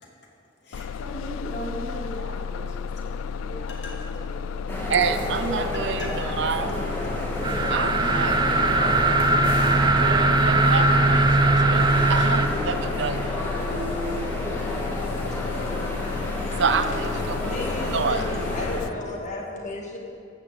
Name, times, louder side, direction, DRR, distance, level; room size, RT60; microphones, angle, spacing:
voice 1, 0.6-4.8 5.7-6.3 6.7-7.2 7.6-7.9, equal, 60° left, -2 dB, 2.6 m, -38 dB
Bus, 0.7-18.9, left 6 dB, 90° left, 0.3 m, -33 dB
sound 1, 4.7-18.8, left 1 dB, 10° left, 1.8 m, -30 dB
voice 2, 4.9-6.8 7.7-8.4 10.0-13.3 16.6-17.6 17.9-18.2, right 5 dB, 65° right, 10 dB, 0.6 m, -28 dB
sound 2, 7.4-12.5, right 2 dB, 20° right, 0.6 m, -20 dB
voice 3, 15.5-15.9 16.4-16.6 17.4-20.0, left 1 dB, 40° left, -1 dB, 2.0 m, -34 dB
13.5 x 6.0 x 8.0 m, 2.5 s
head